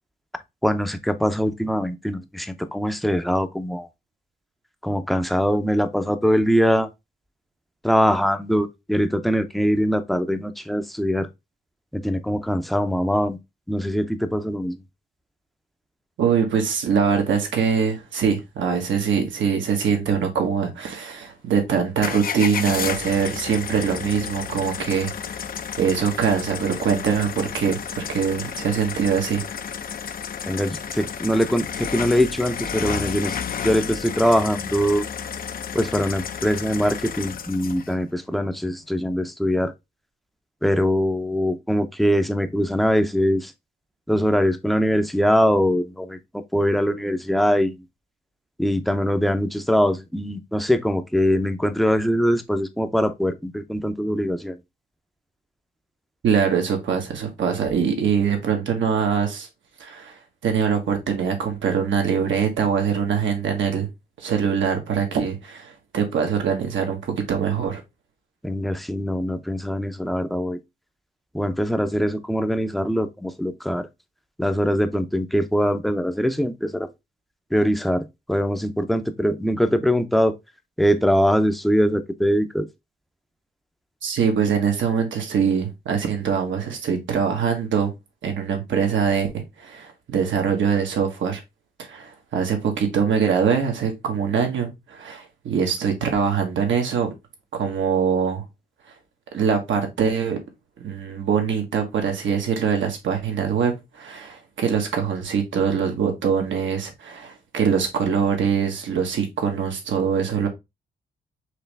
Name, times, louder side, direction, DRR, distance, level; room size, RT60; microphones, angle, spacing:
voice 1, 0.6-3.9 4.8-6.9 7.8-11.3 11.9-13.4 13.7-14.8 30.5-33.4 33.6-35.0 35.7-39.7 40.6-43.5 44.1-47.8 48.6-54.6 68.4-70.6 71.3-73.9 74.4-76.9 77.5-80.4 80.8-82.7, equal, ahead, 0.6 m, -22 dB
voice 2, 16.2-25.1 25.8-29.4 56.2-59.5 59.8-60.1 60.4-63.9 64.2-67.8 84.0-87.9 88.2-89.3 89.6-91.4 91.8-97.1 97.5-98.4 99.3-100.4 100.8-110.5, right 7 dB, 80° right, 1.3 m, -23 dB
sound 1, 22.0-37.9, left 7 dB, 50° left, 0.5 m, -32 dB
4.7 x 3.1 x 3.4 m
cardioid pair, 75°, 19 cm